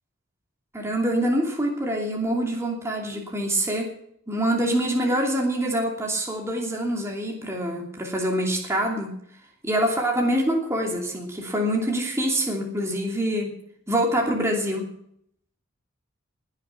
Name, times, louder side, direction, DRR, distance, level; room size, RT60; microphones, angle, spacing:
voice 1, 0.7-3.9 4.3-9.1 9.6-13.5 13.9-14.9, right 1 dB, 15° right, -1 dB, 2.8 m, -25 dB
20.0 x 7.4 x 5.9 m, 0.68 s
head